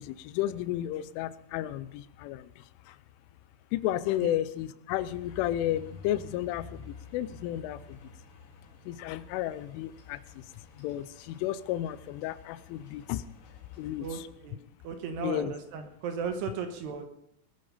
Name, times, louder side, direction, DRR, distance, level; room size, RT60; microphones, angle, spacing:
voice 1, 0.0-2.5 3.7-7.8 8.9-10.2 10.8-13.2 13.8-14.1 15.2-15.5, left 13 dB, 85° left, 15 dB, 3.1 m, -32 dB
sound 1, 4.9-14.3, left 4 dB, 60° left, 3.9 m, -52 dB
voice 2, 14.0-14.6 14.8-17.1, right 6 dB, 70° right, 6 dB, 2.8 m, -36 dB
21.0 x 9.0 x 5.6 m, 0.76 s
omnidirectional pair, 5.6 m